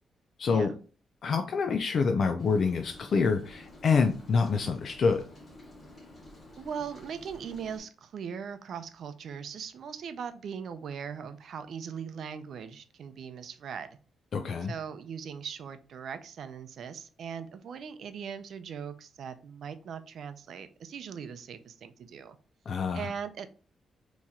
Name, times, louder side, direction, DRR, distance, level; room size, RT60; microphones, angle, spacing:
voice 1, 0.4-0.7 1.2-5.2 14.3-14.7 22.7-23.1, left 5 dB, 60° left, 6 dB, 0.4 m, -26 dB
Rain, 2.4-7.8, left 1 dB, 40° left, 2.0 m, -50 dB
voice 2, 6.6-14.0 14.7-22.4 22.9-23.5, right 7 dB, 70° right, 10 dB, 0.5 m, -40 dB
4.2 x 3.0 x 3.6 m, 0.38 s
cardioid pair, 90°, 0 cm